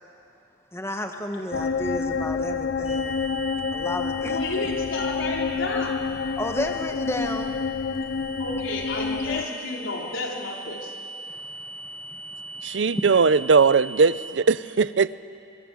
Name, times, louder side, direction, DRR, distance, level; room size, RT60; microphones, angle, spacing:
voice 1, 0.7-3.1 3.7-4.4 6.4-7.5 11.3-13.0, left 1 dB, 15° left, 5 dB, 1.2 m, -32 dB
sound 1, 1.5-9.4, left 5 dB, 55° left, 0.6 m, -28 dB
sound 2, 2.8-14.3, equal, 5° right, 6.8 m, -40 dB
voice 2, 4.2-6.0 8.4-11.0, left 2 dB, 85° left, -1 dB, 4.1 m, -31 dB
voice 3, 12.6-15.2, right 5 dB, 65° right, 17 dB, 0.5 m, -19 dB
24.0 x 24.0 x 7.8 m, 2.6 s
head